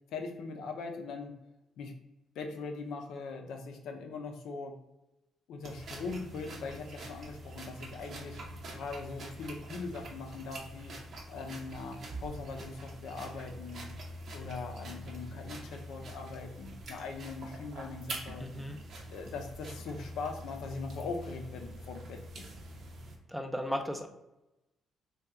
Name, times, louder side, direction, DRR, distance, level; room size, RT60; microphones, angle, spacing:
voice 1, 0.1-1.3 1.8-2.0 2.3-4.7 5.5-8.4 8.7-10.9 11.3-13.9 14.3-18.5 19.1-22.5, left 4 dB, 80° left, 3 dB, 0.5 m, -41 dB
sound 1, 5.6-23.2, right 1 dB, 55° right, 0.7 m, -45 dB
voice 2, 18.4-18.8 23.3-24.1, equal, 5° right, 5 dB, 0.4 m, -35 dB
2.8 x 2.2 x 3.5 m, 0.96 s
cardioid pair, 90°, 0 cm